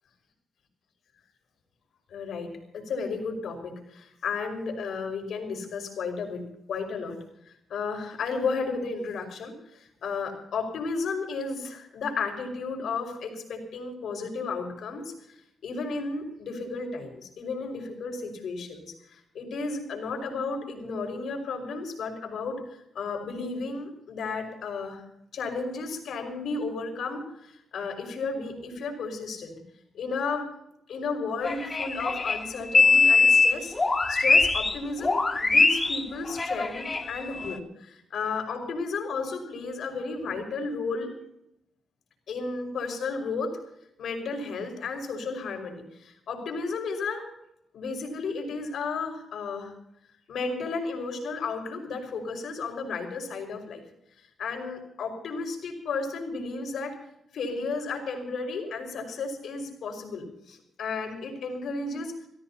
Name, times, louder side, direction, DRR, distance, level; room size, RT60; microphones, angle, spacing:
voice 1, 2.1-7.2 7.7-15.1 15.6-22.6 22.9-25.0 25.3-29.7 29.9-30.5 30.9-33.7 34.1-41.1 42.3-43.5 44.0-47.2 47.7-49.7 50.3-53.8 54.2-57.0 57.3-62.1, left 4 dB, 75° left, 3 dB, 5.7 m, -33 dB
sound 1, 31.4-34.8 35.0-37.6, left 4 dB, 30° left, 2.4 m, -22 dB
28.0 x 16.5 x 2.9 m, 0.77 s
cardioid pair, 75°, 0 cm